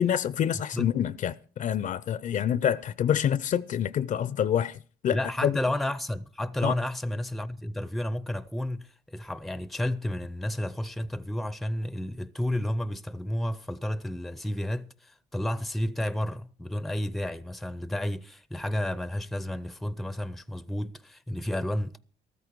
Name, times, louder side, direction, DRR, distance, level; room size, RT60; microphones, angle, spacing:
voice 1, 0.0-5.6 6.6-6.7, left 9 dB, 50° left, 0.5 m, -27 dB
voice 2, 5.1-22.0, left 1 dB, ahead, 0.5 m, -31 dB
14.0 x 13.5 x 4.7 m
cardioid pair, 110°, 17 cm